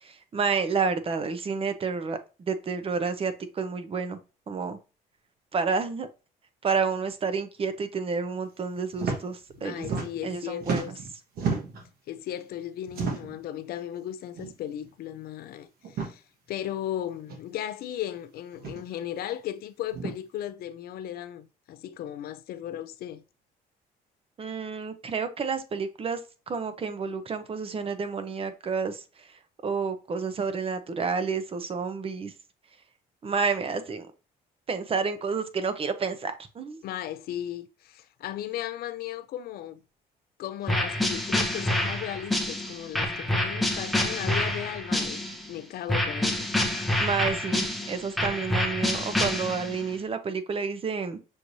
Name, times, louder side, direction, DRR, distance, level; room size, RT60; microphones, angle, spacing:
voice 1, 0.0-4.2 4.5-4.8 5.5-6.1 6.6-10.8 24.4-26.2 26.5-29.3 29.6-32.3 33.2-34.1 34.7-36.8 47.0-51.2, right 5 dB, 35° right, 0.7 m, -30 dB
sound 1, 8.9-9.2 9.5-10.3 10.6-11.9 12.9-13.4 14.3-14.5 14.8-14.9 15.8-16.1 17.3-17.4 18.5-18.8 19.9-20.2, right 5 dB, 65° right, 1.4 m, -32 dB
voice 2, 9.6-10.9 12.1-16.2 16.5-23.2 36.8-39.8 40.4-45.2 45.5-46.5, left 11 dB, 65° left, 0.5 m, -36 dB
sound 2, 40.7-45.5 45.9-49.9, left 1 dB, ahead, 0.8 m, -27 dB
6.3 x 3.1 x 2.7 m
cardioid pair, 110°, 17 cm